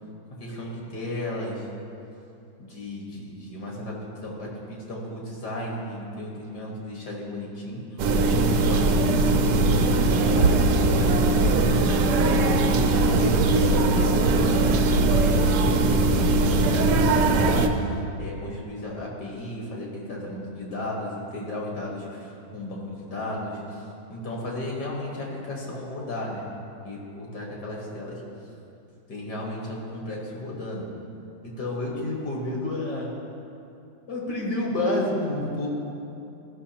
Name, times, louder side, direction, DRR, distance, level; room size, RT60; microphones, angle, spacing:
voice 1, 0.4-1.6 2.6-4.0 4.2-8.1 8.5-12.1 13.0-17.1 17.4-17.8 18.2-23.6 24.1-26.5 26.8-28.2 29.1-30.9 31.4-33.1 34.1-35.7, left 1 dB, 70° left, -3 dB, 2.1 m, -33 dB
sound 1, 8.0-17.7, right 2 dB, 80° right, 1.2 m, -20 dB
13.5 x 5.8 x 2.9 m, 2.7 s
omnidirectional pair, 1.8 m